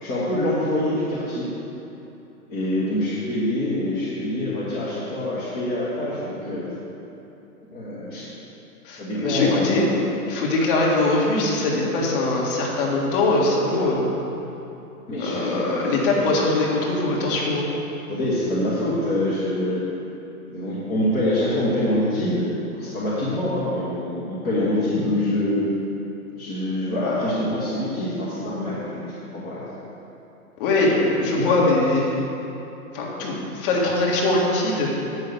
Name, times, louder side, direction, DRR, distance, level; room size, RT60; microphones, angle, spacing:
voice 1, 0.0-1.5 2.5-6.7 7.7-8.3 9.0-10.1 15.1-16.0 18.1-19.9 20.5-25.7 26.4-29.6 31.3-31.5, left 1 dB, 20° left, -9 dB, 1.3 m, -25 dB
voice 2, 8.8-9.9 10.3-14.1 15.2-17.7 30.6-32.2 32.9-34.9, left 2 dB, 35° left, -4 dB, 1.9 m, -22 dB
8.3 x 5.6 x 6.7 m, 2.9 s
hypercardioid pair, 140°, 45 cm